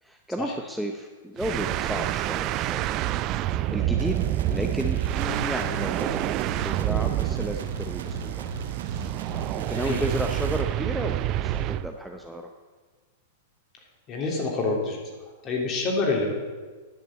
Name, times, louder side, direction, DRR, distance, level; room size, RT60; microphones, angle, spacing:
voice 1, 0.0-2.9 3.7-4.2 4.5-8.5 9.5-12.5, equal, ahead, 3 dB, 0.7 m, -33 dB
sound 1, 1.4-11.9, right 13 dB, 40° right, 0.4 m, -28 dB
sound 2, 4.0-10.7, right 5 dB, 80° right, 1.0 m, -36 dB
voice 2, 14.1-15.0 15.4-16.3, left 3 dB, 35° left, 0 dB, 3.1 m, -26 dB
10.5 x 6.6 x 7.4 m, 1.4 s
hypercardioid pair, 125°, 0 cm